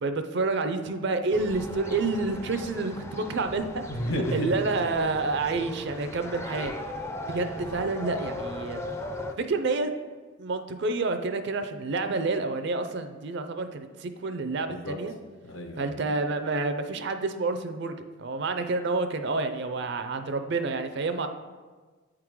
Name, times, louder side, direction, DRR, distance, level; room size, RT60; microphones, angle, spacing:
voice 1, 0.0-3.8 4.3-6.7 7.3-8.8 9.4-9.9 10.4-15.1 15.8-17.9 18.2-21.3, right 3 dB, 60° right, 8 dB, 0.5 m, -29 dB
sound 1, 1.3-9.3, left 1 dB, 15° left, 0.4 m, -38 dB
voice 2, 3.9-4.5 14.7-15.0 15.4-16.0, left 1 dB, 80° left, 4 dB, 0.9 m, -32 dB
8.6 x 3.7 x 4.6 m, 1.4 s
head